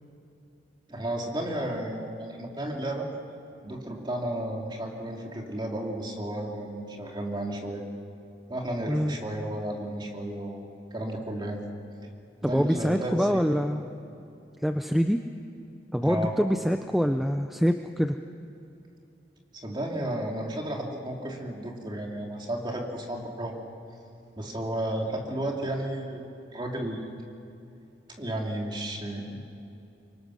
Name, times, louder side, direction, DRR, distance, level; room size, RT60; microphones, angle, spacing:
voice 1, 0.9-3.1 3.6-7.8 8.5-10.6 10.9-11.6 12.4-13.4 16.0-16.3 19.6-23.6 24.4-27.1 28.2-29.4, right 1 dB, 25° right, 0 dB, 2.8 m, -33 dB
voice 2, 12.4-13.8 14.6-15.2 15.9-18.2, equal, ahead, 6 dB, 0.5 m, -25 dB
26.0 x 23.0 x 6.4 m, 2.7 s
head